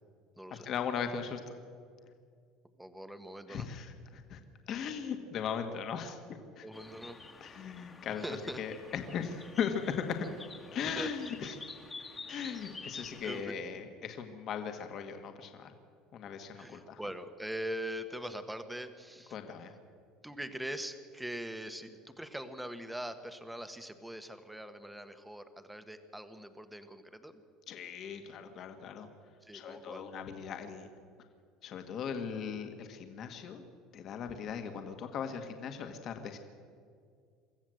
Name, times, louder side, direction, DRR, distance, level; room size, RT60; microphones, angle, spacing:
voice 1, 0.5-1.6 3.5-4.4 4.7-6.6 7.4-10.3 10.7-11.6 12.3-15.7 16.1-17.0 19.3-19.7 27.7-29.1 29.5-30.9 31.6-33.6 33.9-36.4, left 7 dB, 45° left, 6 dB, 1.7 m, -38 dB
voice 2, 2.8-3.7 6.6-7.2 8.2-8.6 10.8-11.1 12.4-12.8 13.2-13.5 16.5-19.4 20.2-27.3 29.4-30.0, equal, 5° right, 9 dB, 1.3 m, -42 dB
sound 1, 6.7-13.4, left 3 dB, 15° left, 1.7 m, -49 dB
24.5 x 14.5 x 7.8 m, 2.2 s
cardioid pair, 145°, 0 cm